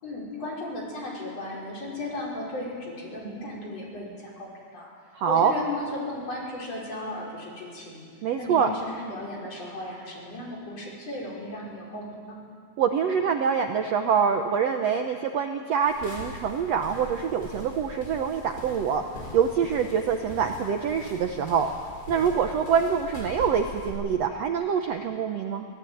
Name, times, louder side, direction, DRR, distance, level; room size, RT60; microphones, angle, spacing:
voice 1, 0.0-4.9 5.3-8.1 8.4-12.4, left 1 dB, 45° left, -3 dB, 6.3 m, -36 dB
voice 2, 5.1-5.5 8.2-8.7 12.8-19.0 19.3-21.7 22.1-25.7, right 7 dB, 65° right, 5 dB, 1.7 m, -25 dB
sound 1, 15.8-23.9, left 2 dB, 25° left, 6.3 m, -42 dB
23.5 x 18.5 x 9.4 m, 2.1 s
omnidirectional pair, 4.0 m